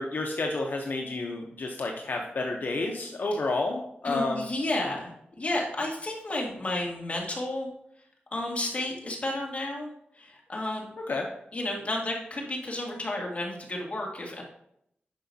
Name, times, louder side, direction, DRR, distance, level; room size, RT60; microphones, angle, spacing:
voice 1, 0.0-4.4 11.1-11.3, left 2 dB, 60° left, 1 dB, 0.8 m, -30 dB
voice 2, 4.0-7.7 8.3-10.9 11.5-14.4, left 1 dB, 40° left, -1 dB, 1.9 m, -32 dB
9.8 x 5.9 x 2.8 m, 0.73 s
wide cardioid pair, 95°, 4 cm